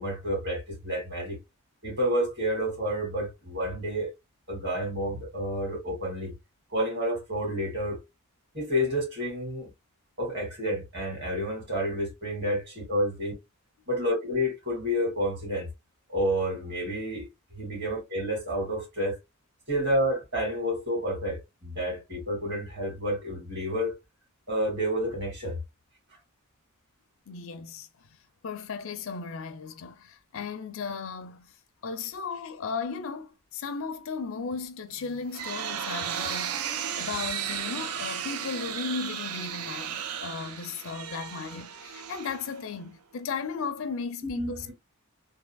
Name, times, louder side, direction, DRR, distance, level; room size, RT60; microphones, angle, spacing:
voice 1, 0.0-1.4 1.8-4.1 4.5-6.3 6.7-8.0 8.5-9.7 10.2-13.3 13.9-15.7 16.1-17.3 17.5-19.2 19.7-24.0 24.5-25.6 44.4-44.7, equal, 50° right, 2.1 m, -29 dB
voice 2, 27.3-27.9 28.4-31.5 31.8-36.7 37.0-44.7, left 5 dB, 65° left, 0.5 m, -35 dB
sound 1, 35.0-42.9, right 9 dB, 80° right, 0.5 m, -35 dB
3.5 x 2.7 x 2.3 m
head